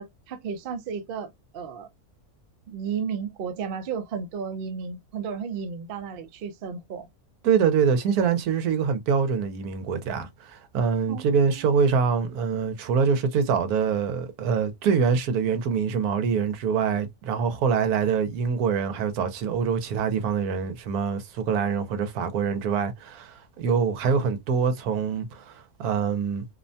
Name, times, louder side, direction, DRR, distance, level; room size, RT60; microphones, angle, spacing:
voice 1, 0.0-1.9 2.7-7.1 11.1-12.0, right 6 dB, 65° right, 0.5 m, -34 dB
voice 2, 7.4-26.5, right 6 dB, 80° right, 1.1 m, -25 dB
2.7 x 2.1 x 2.6 m
omnidirectional pair, 1.6 m